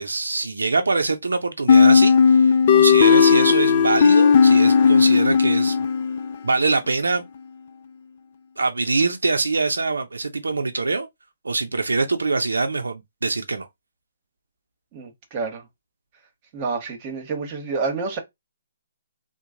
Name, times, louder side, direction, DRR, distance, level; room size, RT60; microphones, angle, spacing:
voice 1, 0.0-5.8 6.4-7.2 8.6-11.1 11.4-13.7, right 3 dB, 85° right, 0.5 m, -24 dB
sound 1, 1.7-6.3, left 6 dB, 45° left, 0.4 m, -15 dB
voice 2, 14.9-15.7 16.5-18.2, right 4 dB, 35° right, 1.0 m, -28 dB
3.0 x 2.0 x 3.7 m
hypercardioid pair, 140°, 0 cm